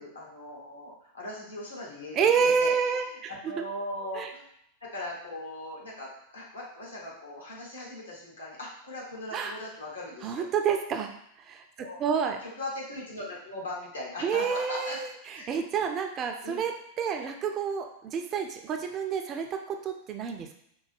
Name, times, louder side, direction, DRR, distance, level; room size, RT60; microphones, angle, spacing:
voice 1, 0.0-4.4 4.8-10.5 11.8-12.0 12.4-15.0 15.3-15.5 16.4-16.6, left 1 dB, 75° left, -3 dB, 1.2 m, -39 dB
voice 2, 2.1-3.6 4.1-4.3 9.3-9.5 10.2-11.1 11.4-12.4 14.2-20.6, right 6 dB, 30° right, 4 dB, 0.4 m, -29 dB
4.3 x 2.1 x 3.3 m, 0.73 s
figure-of-eight pair, 90°, 0 cm